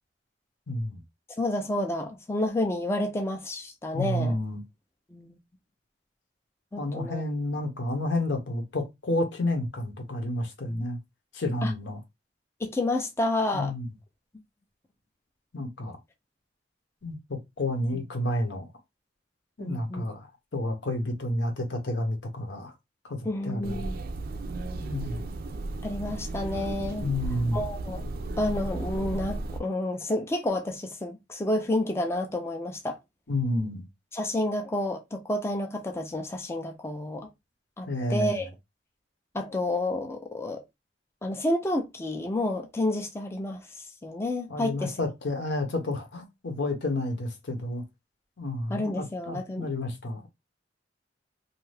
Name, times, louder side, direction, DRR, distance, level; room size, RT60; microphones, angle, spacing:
voice 1, 0.7-1.0 3.9-4.6 6.8-11.0 11.3-12.0 13.5-13.9 15.5-16.0 17.0-18.7 19.6-20.3 20.5-22.7 23.0-23.8 24.8-25.3 27.0-27.6 33.3-33.9 37.9-38.5 44.5-47.8 48.4-50.3, left 1 dB, 75° left, 0.8 m, -30 dB
voice 2, 1.4-4.4 5.1-5.4 6.7-7.2 11.6-11.7 12.6-13.7 17.9-18.0 19.6-20.1 23.2-23.9 25.8-27.1 27.5-28.0 28.4-33.0 34.1-37.3 37.8-38.5 39.3-40.6 41.2-45.0 48.7-49.7, left 1 dB, 15° left, 0.4 m, -30 dB
sound 1, 23.6-29.6, right 2 dB, 55° right, 0.4 m, -34 dB
2.6 x 2.3 x 3.2 m
head